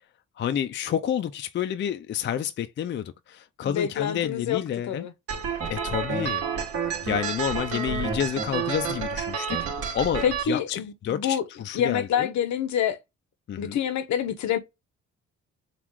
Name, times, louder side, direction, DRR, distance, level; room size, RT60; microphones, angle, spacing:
voice 1, 0.4-5.1 5.7-6.4 7.0-12.3 13.5-13.8, left 9 dB, 40° left, 0.4 m, -29 dB
voice 2, 3.6-4.6 4.9-5.1 10.2-11.4 11.7-13.0 13.6-14.6, left 8 dB, 70° left, 0.8 m, -27 dB
sound 1, 5.3-10.4, right 6 dB, 50° right, 1.6 m, -29 dB
3.7 x 2.4 x 4.5 m
cardioid pair, 90°, 30 cm